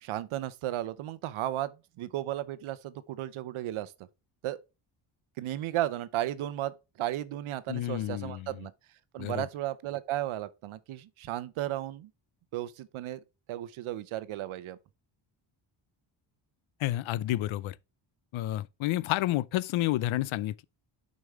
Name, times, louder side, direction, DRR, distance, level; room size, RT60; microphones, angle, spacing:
voice 1, 0.0-3.9 4.4-4.6 5.4-8.7 9.1-12.1 12.5-13.2 13.5-14.8, right 13 dB, 90° right, 0.8 m, -34 dB
voice 2, 7.7-8.5 9.2-9.5 16.8-17.8 18.3-20.6, left 15 dB, 80° left, 0.6 m, -30 dB
6.5 x 5.3 x 3.6 m
wide cardioid pair, 155°, 47 cm